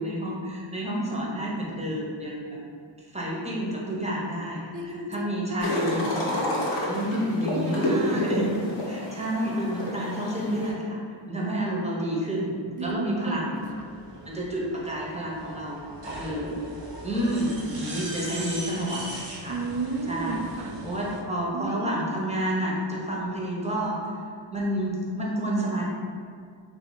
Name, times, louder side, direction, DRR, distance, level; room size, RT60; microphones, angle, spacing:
voice 1, 0.0-2.6 3.1-6.5 6.8-8.6 8.9-11.0 11.3-12.5 12.8-13.6 14.3-15.8 16.1-16.6 17.0-19.0 19.4-19.6 20.1-20.4 20.8-24.0 24.5-25.8, equal, 15° right, -4 dB, 0.9 m, -29 dB
voice 2, 4.7-6.1 7.5-8.6 12.8-13.6 19.5-20.8 21.5-22.0, right 3 dB, 45° right, 4 dB, 0.5 m, -33 dB
sound 1, 5.6-10.7, left 1 dB, 65° left, 0.9 m, -29 dB
sound 2, 13.6-21.2, right 1 dB, 60° right, 0.9 m, -40 dB
3.4 x 2.9 x 4.0 m, 2.1 s
wide cardioid pair, 60°, 47 cm